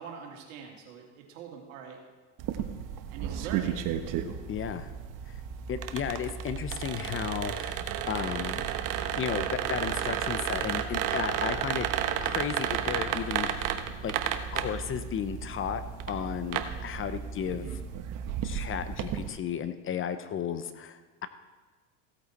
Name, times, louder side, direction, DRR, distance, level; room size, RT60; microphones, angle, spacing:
voice 1, 0.0-2.0 3.1-3.8 17.5-17.8, right 7 dB, 80° right, 1 dB, 2.4 m, -43 dB
sound 1, 2.4-19.3, right 9 dB, 55° right, 1.1 m, -33 dB
voice 2, 4.5-4.9 5.3-5.4 5.7-8.6 9.2-11.9 12.2-13.8 14.0-14.1 14.5-17.7 18.4-21.3, left 8 dB, 35° left, 11 dB, 0.7 m, -34 dB
16.0 x 8.4 x 4.2 m, 1.3 s
supercardioid pair, 105°, 39 cm